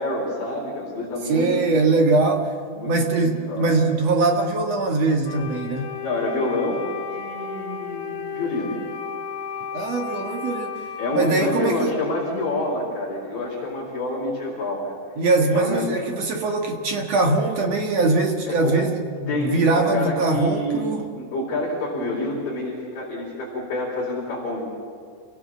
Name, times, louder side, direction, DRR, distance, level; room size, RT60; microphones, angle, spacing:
voice 1, 0.0-1.7 2.7-2.9 3.2-3.8 6.0-8.7 11.0-15.0 15.5-15.9 18.5-18.8 19.3-20.8 21.1-24.6, left 2 dB, 50° left, -6 dB, 5.5 m, -27 dB
voice 2, 1.3-2.5 2.9-5.9 9.7-10.7 11.1-11.9 15.2-21.0, right 3 dB, 55° right, 2 dB, 2.0 m, -22 dB
Wind instrument woodwind instrument, 5.2-13.0, left 6 dB, 75° left, 5.2 m, -34 dB
28.5 x 18.0 x 7.4 m, 2.3 s
omnidirectional pair, 5.0 m